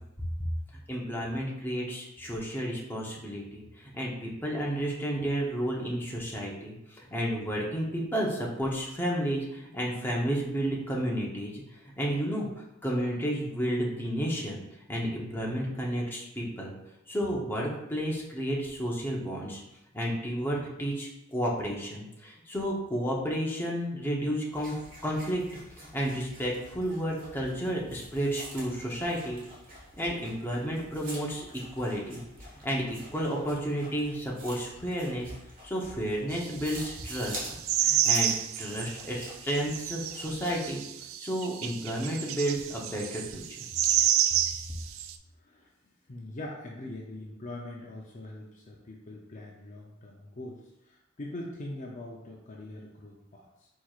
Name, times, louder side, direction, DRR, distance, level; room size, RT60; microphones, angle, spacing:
voice 1, 0.9-11.6 12.0-12.5 12.8-14.6 14.9-16.7 17.1-19.6 19.9-24.8 25.0-25.4 25.9-29.4 30.0-31.5 31.7-32.2 32.6-35.3 35.6-37.4 37.8-40.8 41.2-43.6, equal, 10° left, -3 dB, 0.8 m, -31 dB
sound 1, 24.5-40.7, right 1 dB, 45° right, 1.4 m, -47 dB
sound 2, 36.3-39.1 39.5-45.2, right 10 dB, 70° right, 0.3 m, -29 dB
voice 2, 46.1-53.7, left 1 dB, 40° left, -2 dB, 0.6 m, -42 dB
4.7 x 4.5 x 2.4 m, 0.88 s
head